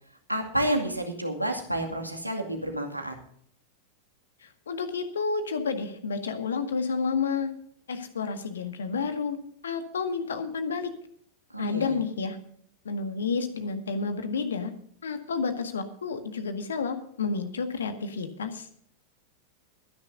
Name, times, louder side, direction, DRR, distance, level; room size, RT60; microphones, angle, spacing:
voice 1, 0.3-3.1 11.5-12.0, right 1 dB, 90° right, 3 dB, 2.2 m, -29 dB
voice 2, 4.4-7.5 7.9-9.4 9.6-10.9 11.6-12.4 12.9-14.7 15.0-18.7, left 5 dB, 70° left, 8 dB, 1.8 m, -30 dB
22.0 x 10.5 x 2.6 m, 0.64 s
figure-of-eight pair, 90°, 0 cm